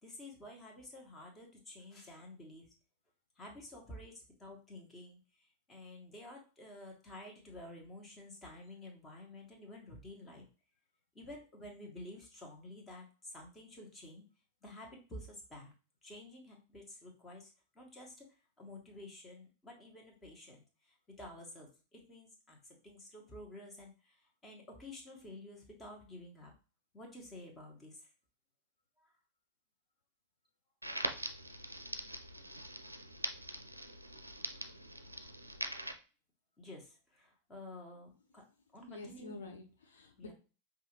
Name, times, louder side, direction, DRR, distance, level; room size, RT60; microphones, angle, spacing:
voice 1, 0.0-2.7 3.3-10.5 11.1-14.2 14.6-15.7 16.0-18.3 18.6-26.5 26.9-28.1 29.0-29.1 36.6-38.4 38.7-39.4 40.2-40.3, left 1 dB, 20° left, 1 dB, 1.4 m, -51 dB
Crackle, 30.8-35.9, right 1 dB, 85° right, 0.4 m, -42 dB
voice 2, 38.7-40.3, left 3 dB, 65° left, 3 dB, 0.6 m, -49 dB
5.3 x 2.6 x 3.1 m, 0.34 s
figure-of-eight pair, 90°, 0 cm